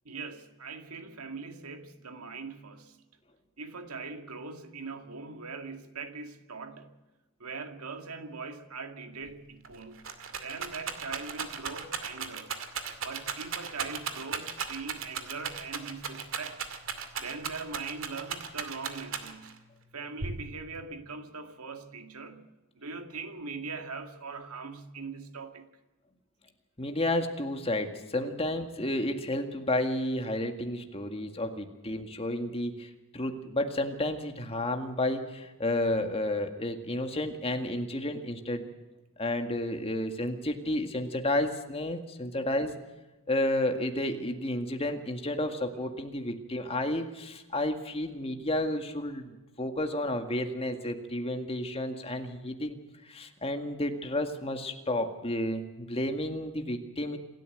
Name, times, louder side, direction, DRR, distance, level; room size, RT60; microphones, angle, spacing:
voice 1, 0.1-3.0 3.6-7.0 7.4-10.1 10.4-12.6 13.0-16.6 17.2-19.6 19.9-25.7 28.2-28.3, right 4 dB, 80° right, 2.0 m, -41 dB
Rattle, 9.3-9.4 9.6-19.6 20.2-20.8, right 6 dB, 60° right, 2.3 m, -36 dB
voice 2, 26.8-38.6 39.2-42.7 43.3-52.8 53.1-57.2, left 1 dB, 25° left, 2.0 m, -31 dB
27.0 x 13.0 x 7.8 m
head